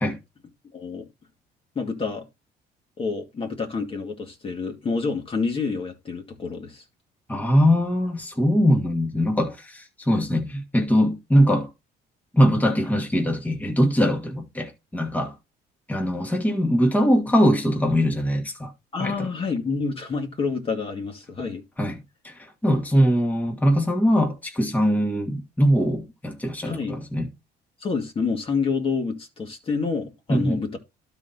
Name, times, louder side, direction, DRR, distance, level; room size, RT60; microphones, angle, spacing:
voice 1, 0.7-1.1 1.8-2.3 3.0-6.8 18.9-21.6 26.6-27.0 27.8-30.8, left 4 dB, 35° left, 1.9 m, -28 dB
voice 2, 7.3-11.7 12.3-15.3 15.9-18.7 19.0-19.3 21.8-27.3 30.3-30.6, equal, 10° left, 1.7 m, -22 dB
12.0 x 4.2 x 4.0 m
cardioid pair, 110°, 17 cm